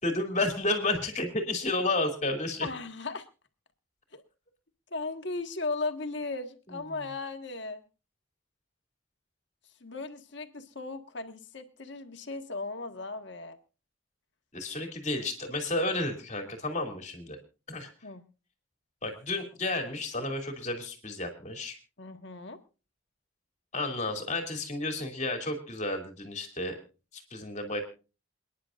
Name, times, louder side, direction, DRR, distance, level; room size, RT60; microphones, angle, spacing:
voice 1, 0.0-2.7 6.7-6.8 14.5-17.4 17.7-17.9 19.0-21.8 23.7-26.7 27.1-27.8, left 2 dB, 35° left, 4 dB, 2.7 m, -31 dB
voice 2, 2.6-3.3 4.1-4.2 4.9-7.8 9.8-13.6 18.0-18.2 22.0-22.6, left 3 dB, 60° left, 6 dB, 1.6 m, -36 dB
28.5 x 10.0 x 2.5 m, 0.33 s
head